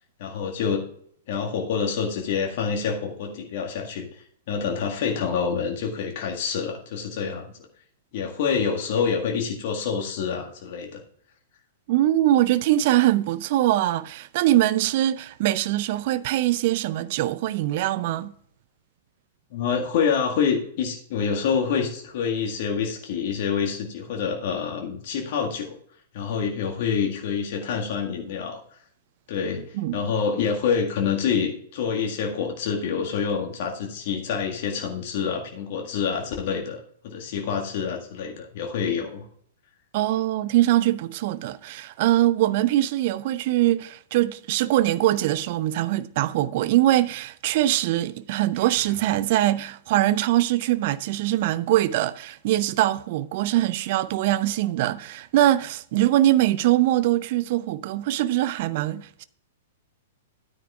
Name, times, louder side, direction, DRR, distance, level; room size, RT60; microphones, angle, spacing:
voice 1, 0.2-0.9 1.3-7.5 8.1-11.0 19.5-25.8 26.1-28.6 29.3-36.8 37.0-39.3, left 6 dB, 50° left, 1.8 m, -27 dB
voice 2, 11.9-18.3 29.8-30.0 39.9-59.2, right 14 dB, 50° right, 0.5 m, -22 dB
sound 1, 48.5-49.7, right 5 dB, 35° right, 2.0 m, -48 dB
13.0 x 9.4 x 2.4 m
figure-of-eight pair, 105°, 0 cm